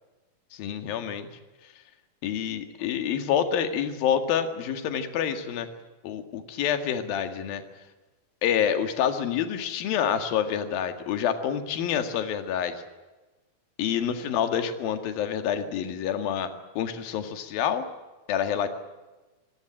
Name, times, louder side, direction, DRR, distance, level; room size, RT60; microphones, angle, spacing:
voice 1, 0.5-1.3 2.2-5.7 6.0-7.6 8.4-12.8 13.8-16.5 16.8-17.9 18.3-18.7, left 8 dB, 70° left, 8 dB, 3.6 m, -27 dB
28.5 x 20.5 x 8.9 m, 1.2 s
omnidirectional pair, 4.4 m